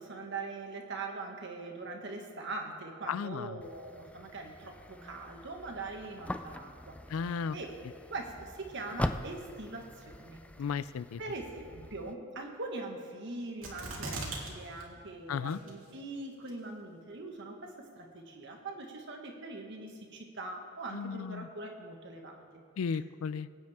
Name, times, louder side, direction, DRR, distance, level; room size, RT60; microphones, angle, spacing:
voice 1, 0.0-7.0 7.2-7.7 8.1-10.4 11.2-22.4, right 3 dB, 60° right, 2 dB, 1.5 m, -42 dB
voice 2, 3.1-3.6 7.1-7.6 10.6-11.2 15.3-15.6 20.9-21.5 22.8-23.5, left 6 dB, 90° left, 17 dB, 0.4 m, -34 dB
sound 1, 3.6-12.1, left 1 dB, 5° left, 0.3 m, -42 dB
sound 2, 13.6-14.5 14.8-14.9 15.5-15.9 16.5-16.6, right 3 dB, 75° right, 2.2 m, -38 dB
20.0 x 9.0 x 3.6 m, 2.3 s
head